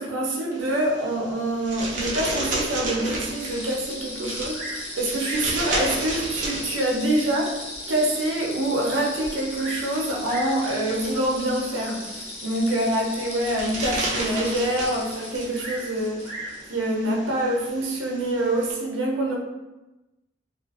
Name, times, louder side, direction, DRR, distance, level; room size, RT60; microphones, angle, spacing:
voice 1, 0.0-7.6 7.9-16.3 16.7-19.4, right 1 dB, 85° right, -2 dB, 0.6 m, -26 dB
sound 1, 0.5-18.7, right 2 dB, 40° right, 0.5 m, -34 dB
sound 2, 3.2-16.6, left 2 dB, 35° left, 0.4 m, -38 dB
Bird vocalization bird call bird song, 4.5-4.9 5.2-5.6 6.4-6.5 7.1-7.2 7.7-7.8 8.0-8.1 9.2-9.9 10.2-10.6 11.6-11.9 15.6-16.6 17.7-18.1, right 1 dB, 15° left, 0.8 m, -37 dB
2.4 x 2.4 x 2.3 m, 1.0 s
head